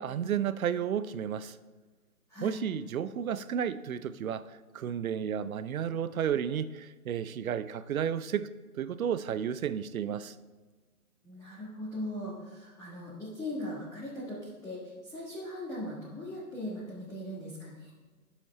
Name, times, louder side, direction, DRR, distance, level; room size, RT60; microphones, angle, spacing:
voice 1, 0.0-1.6 2.4-4.4 4.7-8.5 8.8-10.3, right 8 dB, 70° right, 14 dB, 0.7 m, -32 dB
voice 2, 11.2-17.9, left 1 dB, 5° left, -10 dB, 1.3 m, -39 dB
10.0 x 7.0 x 4.2 m, 1.3 s
hypercardioid pair, 145°, 44 cm